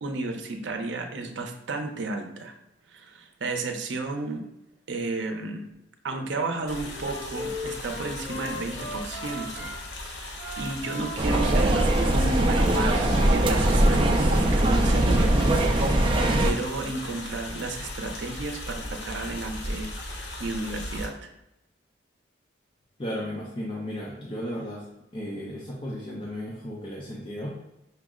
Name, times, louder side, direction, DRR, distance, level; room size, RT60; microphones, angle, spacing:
voice 1, 0.0-2.5 2.9-4.4 4.9-5.7 6.0-15.9 16.1-19.9 20.4-21.3, right 3 dB, 75° right, 4 dB, 0.6 m, -33 dB
Wind instrument woodwind instrument, 6.5-9.7 10.3-13.9, left 1 dB, 45° left, 1.1 m, -38 dB
sound 1, 6.7-21.1, left 1 dB, 65° left, 0.7 m, -38 dB
sound 2, 11.2-16.5, right 1 dB, 25° right, 0.4 m, -21 dB
voice 2, 23.0-24.9 25.1-27.7, equal, 25° left, -4 dB, 0.5 m, -34 dB
5.7 x 2.0 x 3.6 m, 0.89 s
head